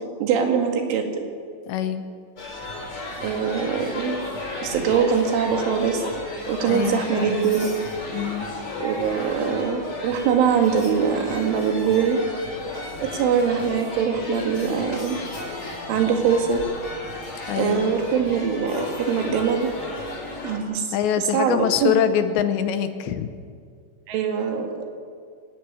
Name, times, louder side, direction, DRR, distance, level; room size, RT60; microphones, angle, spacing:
voice 1, 0.2-1.2 3.2-4.2 4.6-6.0 6.5-7.7 8.8-12.2 13.0-15.2 15.9-16.6 17.5-19.7 20.4-21.9 24.1-24.8, right 7 dB, 85° right, 4 dB, 4.6 m, -23 dB
voice 2, 1.7-2.1 6.7-7.4 8.1-8.5 17.5-17.8 20.9-23.3, left 9 dB, 80° left, 10 dB, 3.0 m, -24 dB
sound 1, 2.4-20.6, left 3 dB, 30° left, 4.9 m, -33 dB
25.0 x 13.5 x 9.5 m, 2.2 s
omnidirectional pair, 5.5 m